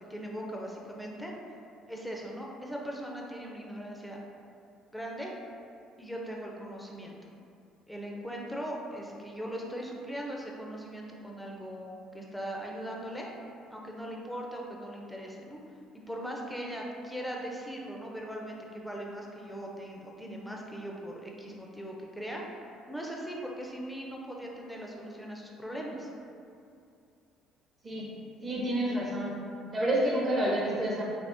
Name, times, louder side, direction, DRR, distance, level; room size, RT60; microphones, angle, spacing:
voice 1, 0.1-1.3 1.9-4.2 4.9-5.3 6.0-7.2 7.9-13.3 13.7-15.6 16.1-22.4 22.9-26.1, equal, 5° left, -2 dB, 0.6 m, -39 dB
voice 2, 28.4-29.4 29.7-31.0, right 1 dB, 30° right, -4 dB, 0.9 m, -29 dB
3.4 x 2.7 x 2.6 m, 2.5 s
hypercardioid pair, 65°, 0 cm